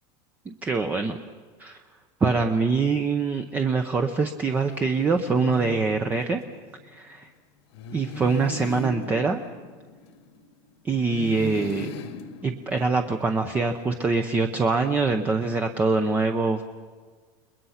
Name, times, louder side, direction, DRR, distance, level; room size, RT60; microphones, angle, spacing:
voice 1, 0.5-1.2 1.6-1.8 2.2-6.4 6.8-7.3 7.9-9.4 10.8-11.9 12.4-16.6, right 4 dB, 10° right, 7 dB, 0.7 m, -24 dB
sound 1, 4.5-6.6 7.7-10.4 11.0-13.2, left 2 dB, 85° left, 1.9 m, -38 dB
30.0 x 21.5 x 5.8 m, 1.5 s
supercardioid pair, 180°, 14 cm